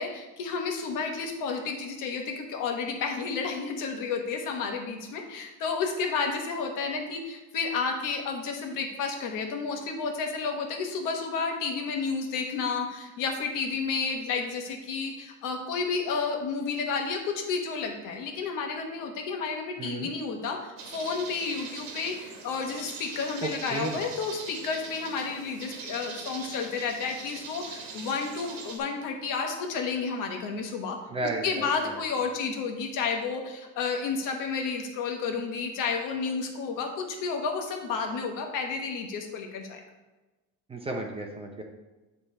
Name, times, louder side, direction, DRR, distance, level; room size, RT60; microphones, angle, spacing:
voice 1, 0.0-31.0 31.4-39.8, left 5 dB, 65° left, 3 dB, 1.2 m, -31 dB
voice 2, 19.8-20.1 23.4-24.0 31.1-32.0 40.7-41.6, right 2 dB, 15° right, 2 dB, 0.5 m, -33 dB
sound 1, 20.8-28.8, right 4 dB, 70° right, 1.3 m, -42 dB
9.3 x 3.3 x 4.3 m, 1.1 s
cardioid pair, 170°, 34 cm